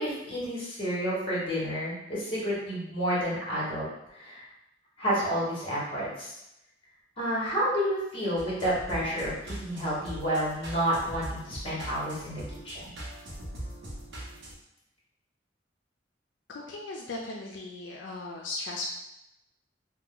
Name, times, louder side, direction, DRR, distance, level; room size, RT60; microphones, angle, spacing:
voice 1, 0.0-4.5 5.0-6.4 7.2-12.8, equal, 30° left, -7 dB, 1.3 m, -30 dB
sound 1, 8.4-14.5, right 1 dB, 70° right, 0.8 m, -41 dB
voice 2, 16.5-18.9, left 2 dB, 80° left, -1 dB, 0.4 m, -37 dB
2.8 x 2.2 x 3.7 m, 0.88 s
head